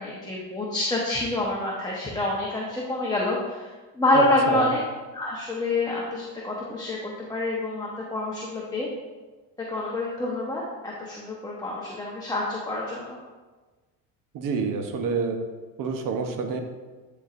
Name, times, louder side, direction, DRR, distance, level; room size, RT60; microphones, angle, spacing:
voice 1, 0.0-4.8 5.1-8.9 9.7-13.2, left 2 dB, 10° left, -4 dB, 1.1 m, -27 dB
voice 2, 4.1-4.7 14.3-15.4 15.8-16.6, right 5 dB, 60° right, 4 dB, 1.0 m, -28 dB
10.5 x 4.4 x 2.6 m, 1.3 s
supercardioid pair, 105°, 37 cm